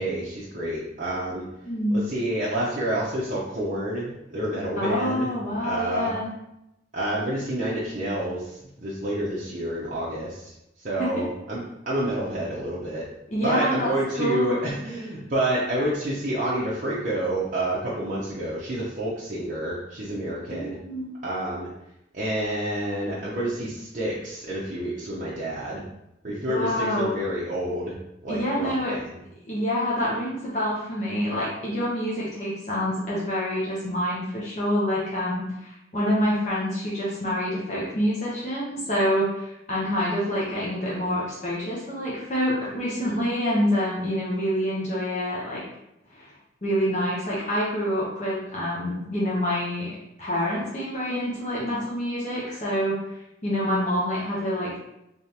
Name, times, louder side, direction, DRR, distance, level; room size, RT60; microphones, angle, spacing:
voice 1, 0.0-1.5 1.9-5.3 5.6-6.1 6.9-10.5 10.8-13.0 13.4-20.8 21.2-21.7 22.1-25.8 26.2-27.9 28.2-29.2, right 1 dB, 45° right, -7 dB, 0.7 m, -28 dB
voice 2, 1.6-2.0 4.8-6.3 11.0-11.2 13.3-14.6 20.5-21.1 26.5-27.2 28.3-28.9 29.5-45.6 46.1-46.3 46.6-49.9 50.2-53.0 53.4-54.8, equal, 40° left, -7 dB, 0.9 m, -27 dB
3.5 x 3.3 x 2.9 m, 0.86 s
head